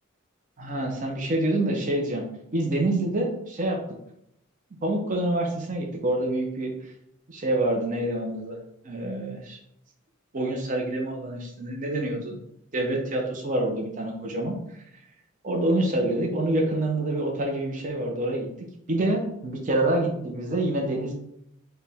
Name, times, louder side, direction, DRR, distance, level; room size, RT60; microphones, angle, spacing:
voice 1, 0.6-2.2 2.5-3.8 4.8-6.9 7.3-8.6 8.8-9.6 10.3-12.4 12.7-14.5 15.4-18.5 18.9-21.1, right 1 dB, 40° right, 0 dB, 0.6 m, -26 dB
4.7 x 2.2 x 3.4 m, 0.76 s
head